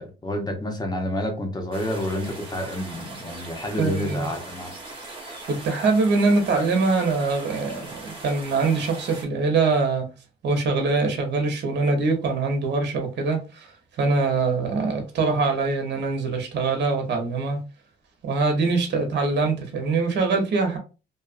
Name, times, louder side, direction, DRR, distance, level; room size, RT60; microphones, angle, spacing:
voice 1, 0.0-4.7, left 1 dB, 20° left, 0.9 m, -29 dB
sound 1, 1.7-9.3, right 2 dB, 25° right, 1.1 m, -40 dB
voice 2, 3.7-4.3 5.5-10.1 10.4-13.7 14.0-17.6 18.2-20.8, right 3 dB, 60° right, 0.8 m, -23 dB
2.7 x 2.4 x 2.4 m
cardioid pair, 90°, 20 cm